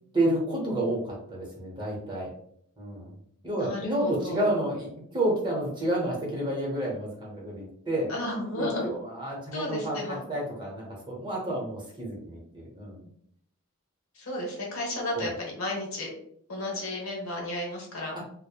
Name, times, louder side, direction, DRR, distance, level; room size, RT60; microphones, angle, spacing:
voice 1, 0.1-2.3 2.8-3.2 3.4-8.1 8.6-13.0 15.1-15.3, right 1 dB, 20° right, -4 dB, 0.8 m, -30 dB
voice 2, 3.5-4.5 8.1-8.9 9.5-10.2 14.1-16.1 16.5-18.1, left 1 dB, 75° left, -2 dB, 1.0 m, -33 dB
3.0 x 2.1 x 2.2 m, 0.66 s
head